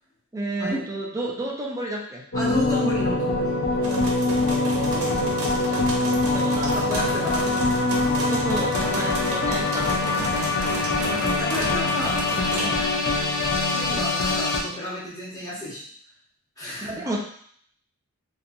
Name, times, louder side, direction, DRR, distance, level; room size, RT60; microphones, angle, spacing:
voice 1, 0.3-2.2 4.2-6.9 8.3-10.5 10.8-11.3 12.6-12.9 16.8-17.2, right 2 dB, 15° right, -2 dB, 0.4 m, -33 dB
sound 1, 2.3-14.6, left 3 dB, 60° left, 0.5 m, -24 dB
voice 2, 2.3-4.4 6.7-7.7 11.1-12.8 13.7-15.8 16.6-16.9, left 1 dB, 15° left, -10 dB, 0.9 m, -32 dB
sound 2, 3.8-12.7, right 2 dB, 70° right, 0.6 m, -33 dB
2.7 x 2.3 x 2.6 m, 0.62 s
head